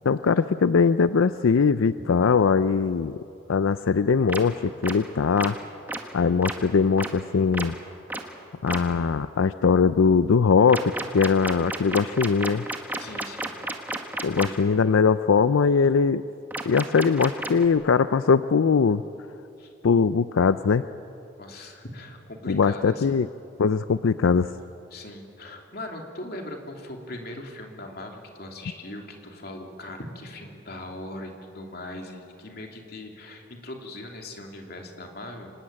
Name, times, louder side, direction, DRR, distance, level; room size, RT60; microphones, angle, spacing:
voice 1, 0.0-3.2 3.5-5.6 6.1-7.7 8.6-12.6 14.2-16.2 16.7-19.0 19.8-20.8 22.5-23.3 23.6-24.5, left 5 dB, 85° left, 13 dB, 0.5 m, -21 dB
sound 1, 4.3-4.4 4.8-4.9 5.4-5.5 5.9-6.0 6.4-6.5 7.0-7.1 7.5-7.7 8.1-8.2 8.7-8.8 10.7-14.5 16.5-17.7, right 2 dB, 10° right, 1.5 m, -31 dB
voice 2, 13.0-13.5 14.3-14.7 19.6-19.7 21.4-23.1 24.9-35.5, left 1 dB, 50° left, 2 dB, 3.0 m, -40 dB
25.5 x 20.0 x 8.8 m, 2.7 s
head